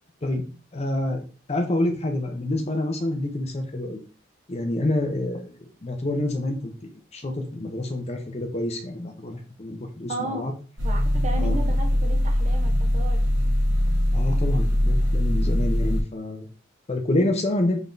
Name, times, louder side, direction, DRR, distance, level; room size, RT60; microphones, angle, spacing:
voice 1, 0.7-4.0 4.5-5.5 5.8-10.5 11.3-11.6 14.1-16.5 16.9-17.8, left 1 dB, 30° left, 4 dB, 0.6 m, -27 dB
voice 2, 10.1-10.5 10.8-13.2, right 1 dB, 35° right, 3 dB, 0.6 m, -34 dB
room tone heating, 10.8-16.0, equal, 60° right, 1.1 m, -22 dB
4.0 x 3.5 x 2.6 m, 0.37 s
head